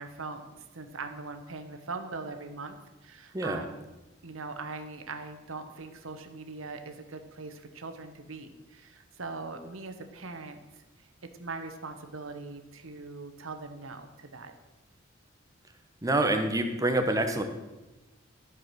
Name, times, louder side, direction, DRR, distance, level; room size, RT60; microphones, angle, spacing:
voice 1, 0.0-2.8 3.0-3.9 4.2-10.6 11.4-14.5, right 3 dB, 80° right, 7 dB, 1.0 m, -41 dB
voice 2, 16.0-17.4, right 2 dB, 15° right, 6 dB, 0.8 m, -26 dB
13.0 x 4.8 x 6.1 m, 1.1 s
head